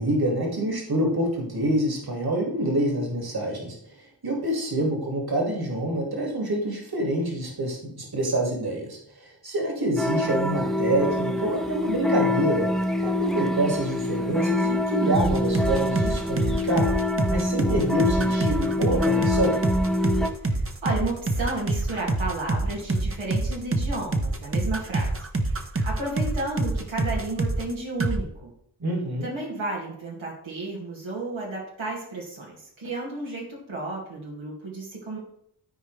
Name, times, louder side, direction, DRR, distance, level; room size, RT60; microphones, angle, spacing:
voice 1, 0.0-12.7 13.0-16.9 17.3-19.6 28.8-29.3, right 1 dB, 50° right, 0 dB, 2.4 m, -26 dB
sound 1, 10.0-20.3, left 1 dB, ahead, 0.8 m, -25 dB
sound 2, 15.1-27.7 28.0-28.2, right 2 dB, 30° right, 1.0 m, -26 dB
voice 2, 20.4-25.1 25.8-28.5 29.2-35.2, right 2 dB, 85° right, -3 dB, 2.3 m, -32 dB
13.0 x 4.5 x 3.3 m, 0.70 s
cardioid pair, 60°, 46 cm